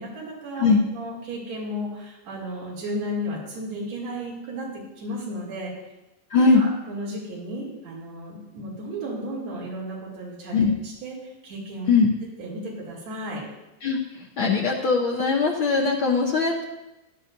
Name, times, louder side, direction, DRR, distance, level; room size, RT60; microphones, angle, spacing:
voice 1, 0.0-4.7 5.0-5.7 6.4-11.9 12.4-13.4, equal, 60° right, -6 dB, 4.1 m, -34 dB
voice 2, 6.3-6.6 10.5-10.7 11.9-12.1 13.8-14.0 14.4-16.6, left 4 dB, 75° left, 0 dB, 1.1 m, -20 dB
14.5 x 11.5 x 2.6 m, 0.96 s
omnidirectional pair, 3.4 m